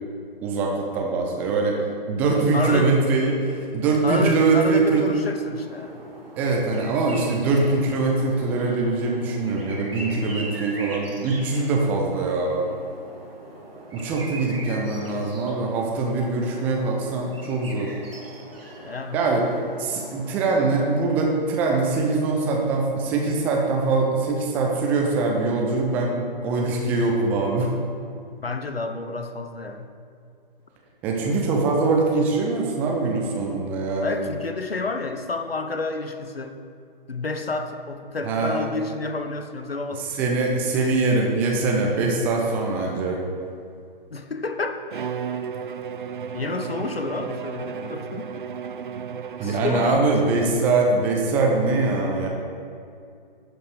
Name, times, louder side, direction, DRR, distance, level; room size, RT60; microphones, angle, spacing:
voice 1, 0.4-1.8 2.1-5.1 6.4-12.7 13.9-17.9 19.1-19.5 19.8-27.7 31.0-34.3 38.2-38.7 40.0-43.2 49.4-52.3, right 3 dB, 5° right, 0 dB, 0.4 m, -23 dB
voice 2, 2.5-2.9 4.0-6.0 18.8-19.2 28.4-29.9 34.0-36.6 37.1-40.1 44.1-44.8 46.3-48.4 49.4-50.2, left 3 dB, 85° left, 7 dB, 0.9 m, -29 dB
sound 1, 5.2-21.1, right 1 dB, 80° right, 2.3 m, -41 dB
Bowed string instrument, 44.9-50.5, right 7 dB, 60° right, 0.6 m, -33 dB
11.5 x 5.1 x 4.8 m, 2.4 s
figure-of-eight pair, 130°, 29 cm